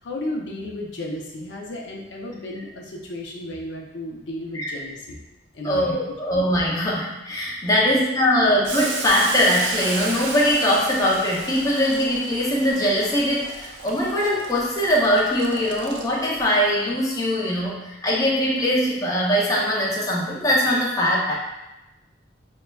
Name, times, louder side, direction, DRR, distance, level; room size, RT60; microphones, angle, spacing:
voice 1, 0.0-5.2 5.5-6.0, left 1 dB, 70° left, -1 dB, 0.5 m, -33 dB
voice 2, 5.6-21.3, equal, 20° left, -5 dB, 0.6 m, -21 dB
Boiling, 8.6-16.4, right 3 dB, 70° right, 0.4 m, -33 dB
5.4 x 2.1 x 2.2 m, 0.98 s
head